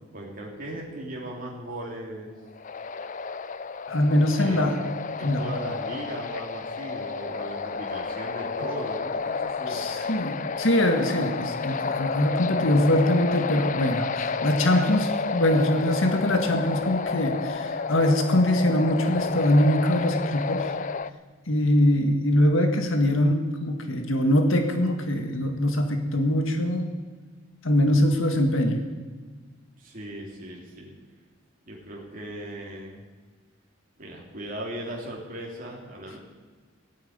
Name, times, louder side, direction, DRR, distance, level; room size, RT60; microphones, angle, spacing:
voice 1, 0.1-2.3 4.4-4.7 5.2-9.9 29.8-30.9 31.6-33.0 34.0-36.2, right 1 dB, 45° right, -2 dB, 3.2 m, -37 dB
sound 1, 2.6-21.1, left 5 dB, 40° left, 0.5 m, -31 dB
voice 2, 3.9-4.8 5.2-5.4 9.7-20.7 21.5-26.9 27.6-28.8, left 1 dB, 75° left, 5 dB, 1.8 m, -23 dB
16.0 x 9.0 x 9.6 m, 1.4 s
head